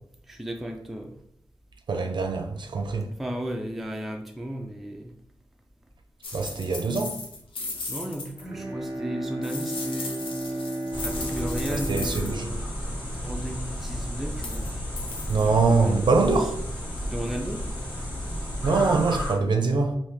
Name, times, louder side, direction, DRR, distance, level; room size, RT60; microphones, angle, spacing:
voice 1, 0.3-1.2 3.2-5.1 7.7-10.6 11.0-12.8 13.2-14.7 15.3-16.1 16.4-16.5 17.1-17.7, equal, ahead, 0.4 m, -35 dB
voice 2, 1.9-3.1 6.3-7.2 11.7-12.5 15.3-16.5 18.6-20.0, right 4 dB, 60° right, 0.5 m, -23 dB
sound 1, 6.2-8.4 9.4-12.3 14.3-14.7 15.0-15.5 16.3-16.5, left 3 dB, 85° left, 0.7 m, -37 dB
Bowed string instrument, 8.3-13.5, right 1 dB, 30° right, 0.7 m, -34 dB
sound 2, 10.9-19.3, equal, 65° left, 1.3 m, -32 dB
2.9 x 2.7 x 3.4 m
wide cardioid pair, 80°, 9 cm